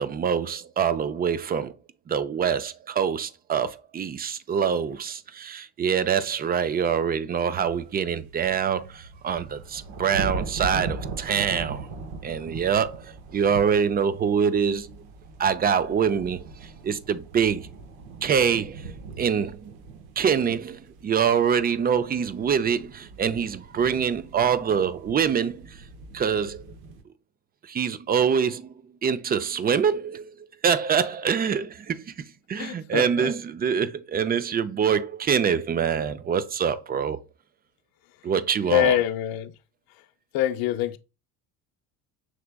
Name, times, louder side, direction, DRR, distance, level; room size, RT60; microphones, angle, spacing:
voice 1, 0.0-1.7 2.1-11.9 12.2-13.0 13.3-14.9 15.4-16.5 16.8-17.7 18.2-18.8 19.2-19.7 20.2-25.6 26.1-26.6 27.7-28.7 29.0-30.2 30.6-32.0 32.5-37.2 38.2-39.0, right 7 dB, 25° right, 0.4 m, -25 dB
sound 1, 7.5-27.0, right 3 dB, 70° right, 0.9 m, -40 dB
voice 2, 32.6-33.3 38.7-39.5 40.3-41.0, left 12 dB, 60° left, 0.5 m, -24 dB
6.0 x 3.3 x 2.2 m
supercardioid pair, 80°, 40 cm